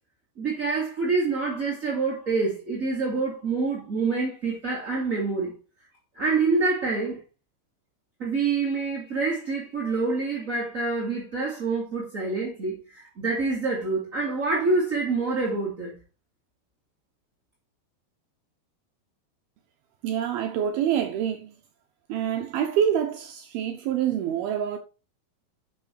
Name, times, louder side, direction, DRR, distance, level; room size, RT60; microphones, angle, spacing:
voice 1, 0.4-5.5 6.1-7.2 8.2-15.9, right 3 dB, 25° right, 2.0 m, -26 dB
voice 2, 20.0-21.5 22.1-24.8, right 9 dB, 75° right, 2.6 m, -26 dB
9.1 x 6.6 x 4.6 m
omnidirectional pair, 4.7 m